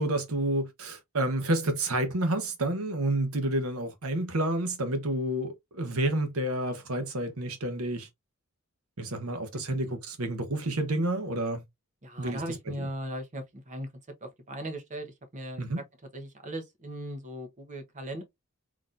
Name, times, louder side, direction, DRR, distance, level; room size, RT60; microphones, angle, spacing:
voice 1, 0.0-8.1 9.0-11.6 12.2-12.4 12.8-12.9 15.6-15.8, right 1 dB, 80° right, 1.0 m, -29 dB
voice 2, 12.0-13.9 14.2-15.6 16.1-18.2, right 1 dB, 35° right, 1.0 m, -38 dB
4.0 x 3.0 x 2.5 m
head